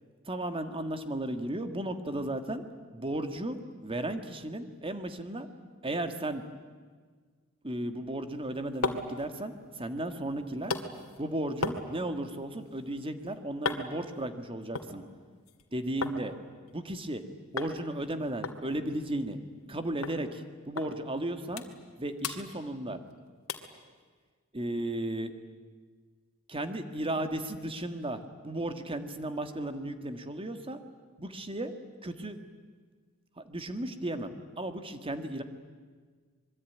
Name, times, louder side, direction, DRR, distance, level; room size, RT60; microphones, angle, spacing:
voice 1, 0.3-2.6 2.9-5.5 5.8-6.4 7.6-10.7 11.2-15.0 15.7-16.3 16.7-17.2 17.5-19.4 19.7-21.6 22.0-23.0 24.5-25.3 26.5-30.8 31.2-31.7 32.0-32.4 33.4-35.4, right 1 dB, 25° right, 8 dB, 1.8 m, -35 dB
sound 1, 8.3-16.2 16.5-17.2 17.6-17.8 18.0-18.1 18.4-19.7 20.0-20.2 20.8-20.9 21.3-21.9 22.2-23.1 23.5-23.8 24.3-24.4, left 4 dB, 85° left, 2.2 m, -38 dB
25.5 x 23.0 x 9.5 m, 1.5 s
head